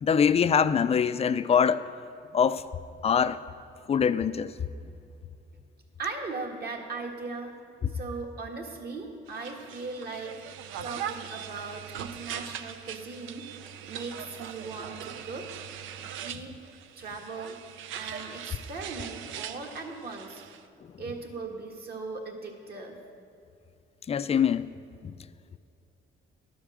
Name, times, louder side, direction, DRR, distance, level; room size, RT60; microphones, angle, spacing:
voice 1, 0.0-1.9 2.3-2.6 3.0-3.4 3.9-4.5 24.1-24.7 25.0-25.1, left 7 dB, 30° left, 0.3 m, -23 dB
voice 2, 6.0-7.6 7.9-10.4 10.8-13.5 13.8-15.5 16.2-16.6 17.0-17.6 17.9-20.4 21.0-23.0, right 3 dB, 50° right, 1.5 m, -38 dB
sound 1, 9.3-20.6, right 9 dB, 85° right, 0.5 m, -41 dB
11.5 x 4.9 x 7.5 m
cardioid pair, 90°, 20 cm